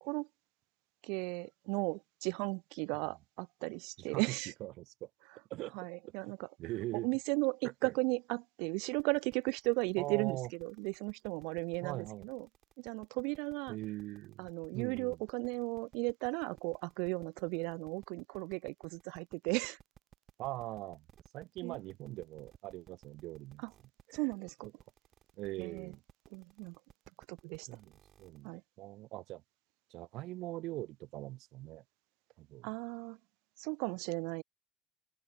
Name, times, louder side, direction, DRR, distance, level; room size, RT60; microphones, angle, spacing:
voice 1, 1.0-4.5 5.7-6.5 7.0-12.5 12.8-13.8 14.4-19.8 21.6-21.8 24.1-24.7 25.6-25.9 26.3-26.7 27.3-27.7 28.4-28.6 32.6-33.2 33.6-34.4, right 33 dB, 80° right, 0.4 m, -35 dB
voice 2, 4.0-5.1 5.5-5.8 6.2-6.3 6.6-7.1 7.6-7.9 10.0-10.5 11.8-12.3 13.7-14.5 14.7-15.2 20.4-21.1 21.3-23.6 24.1-24.2 25.4-26.0 27.7-29.4 29.9-31.8 32.4-32.7, right 17 dB, 55° right, 1.0 m, -42 dB
sound 1, 9.0-28.5, right 9 dB, 30° right, 5.4 m, -61 dB
open air
cardioid pair, 175°, 0 cm